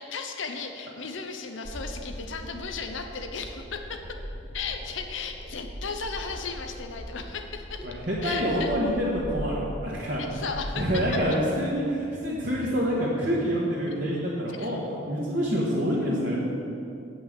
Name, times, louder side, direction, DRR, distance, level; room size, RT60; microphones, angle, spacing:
voice 1, 0.0-4.0 4.5-7.9 8.2-8.7 10.2-10.8 14.5-14.8, left 5 dB, 70° left, 4 dB, 0.7 m, -35 dB
sound 1, 1.6-11.8, equal, 10° right, 1.5 m, -40 dB
voice 2, 7.8-10.4 10.7-14.8 15.1-16.3, equal, 50° right, -7 dB, 1.6 m, -27 dB
8.9 x 5.9 x 7.3 m, 2.6 s
head